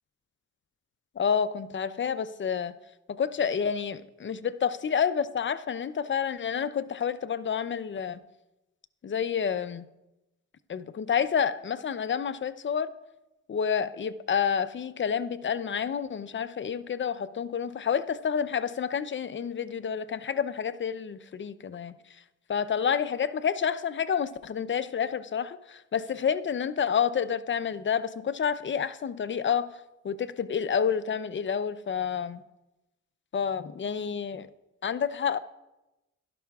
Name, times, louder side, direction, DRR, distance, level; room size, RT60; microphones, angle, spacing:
voice 1, 1.2-2.7 3.1-8.2 9.0-9.9 10.7-12.9 13.5-21.9 22.5-29.7 30.0-32.4 33.3-34.5 34.8-35.4, left 7 dB, 40° left, 0.5 m, -29 dB
16.0 x 12.0 x 2.3 m
cardioid pair, 70°, 31 cm